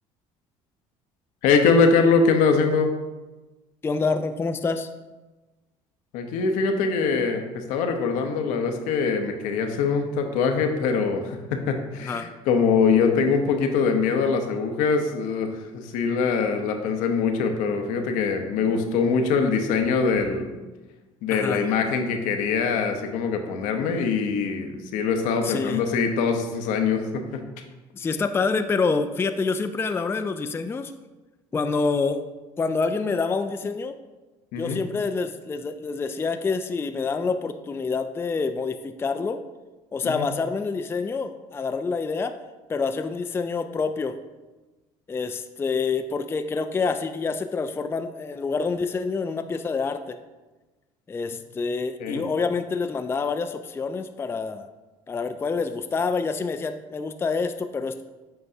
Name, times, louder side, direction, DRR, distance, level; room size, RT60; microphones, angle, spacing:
voice 1, 1.4-2.9 6.1-20.6 21.2-27.6 34.5-34.8 40.0-40.2 52.0-52.2, left 5 dB, 75° left, 5 dB, 0.8 m, -23 dB
voice 2, 3.8-4.9 12.0-12.3 21.3-21.7 25.4-25.8 27.9-30.9 31.5-32.2 32.6-33.9 34.6-39.4 39.9-42.3 42.7-44.2 45.1-50.2 51.1-54.7 55.1-58.0, left 4 dB, 20° left, 8 dB, 0.3 m, -27 dB
7.8 x 4.7 x 2.7 m, 1.2 s
supercardioid pair, 85°, 13 cm